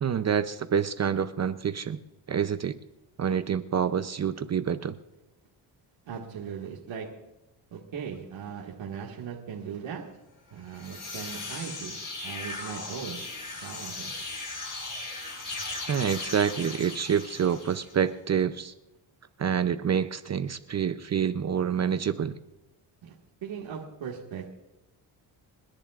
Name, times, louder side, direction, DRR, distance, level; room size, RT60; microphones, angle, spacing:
voice 1, 0.0-2.0 2.3-2.7 3.2-5.0 15.9-18.7 19.4-22.3, right 8 dB, 35° right, 11 dB, 0.6 m, -27 dB
voice 2, 6.1-7.1 7.7-10.0 10.5-12.0 12.2-13.2 13.6-14.1 23.0-23.2 23.4-24.5, right 7 dB, 80° right, -2 dB, 2.0 m, -38 dB
sound 1, 10.6-18.0, left 3 dB, 45° left, 4.3 m, -38 dB
29.0 x 10.5 x 2.5 m, 0.97 s
cardioid pair, 110°, 45 cm